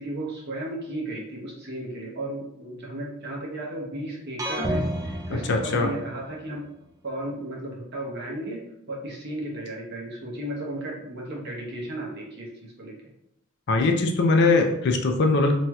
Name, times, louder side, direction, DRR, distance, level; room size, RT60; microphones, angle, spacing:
voice 1, 0.0-6.6 7.0-13.0, right 1 dB, 50° right, -3 dB, 0.8 m, -34 dB
sound 1, 4.4-6.4, right 1 dB, 15° right, 0.3 m, -30 dB
voice 2, 5.5-5.9 13.7-15.5, left 3 dB, 50° left, 4 dB, 0.4 m, -21 dB
3.1 x 2.8 x 2.3 m, 0.80 s
head